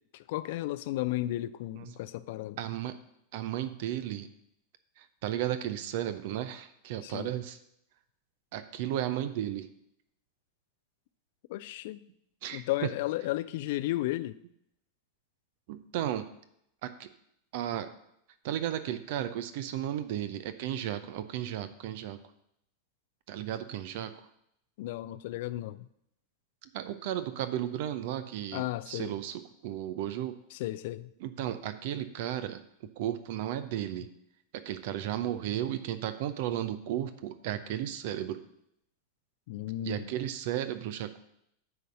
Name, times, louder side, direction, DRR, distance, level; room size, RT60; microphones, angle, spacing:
voice 1, 0.3-2.6 7.0-7.3 11.5-12.0 12.5-14.3 24.8-25.9 28.5-29.1 30.6-31.1 39.5-40.0, left 16 dB, 50° left, 0.4 m, -33 dB
voice 2, 2.6-3.0 3.3-4.3 5.0-7.6 8.5-9.7 12.4-12.9 15.7-16.3 16.8-17.1 17.5-17.9 18.4-22.2 23.3-24.3 26.6-30.4 31.2-34.1 34.5-38.4 39.8-41.2, right 11 dB, 50° right, 0.5 m, -34 dB
9.3 x 4.0 x 6.4 m
figure-of-eight pair, 90°, 0 cm